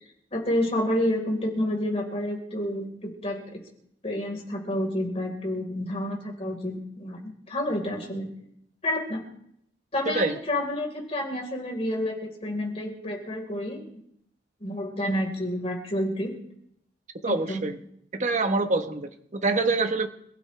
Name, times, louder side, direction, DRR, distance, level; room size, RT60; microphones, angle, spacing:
voice 1, 0.3-3.6 4.0-8.3 8.8-9.2 9.9-13.8 14.6-16.3 17.2-17.6, left 1 dB, 35° left, 0 dB, 4.5 m, -29 dB
voice 2, 17.2-17.8 18.1-20.1, right 3 dB, 40° right, 6 dB, 1.2 m, -25 dB
27.0 x 15.5 x 3.4 m, 0.71 s
head